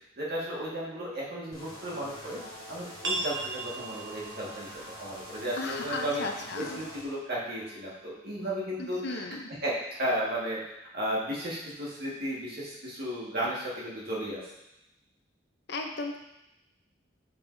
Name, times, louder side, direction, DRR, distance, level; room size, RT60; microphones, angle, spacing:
voice 1, 0.2-2.4 2.7-6.2 6.5-9.2 9.6-14.4, equal, 60° right, -5 dB, 1.8 m, -34 dB
sound 1, 1.5-7.0, left 1 dB, 20° left, 1.7 m, -45 dB
sound 2, 3.0-8.4, right 2 dB, 90° right, 1.0 m, -40 dB
voice 2, 5.6-6.8 8.8-9.5 15.7-16.2, left 3 dB, 65° left, 3 dB, 0.7 m, -35 dB
6.9 x 5.4 x 2.7 m, 0.88 s
head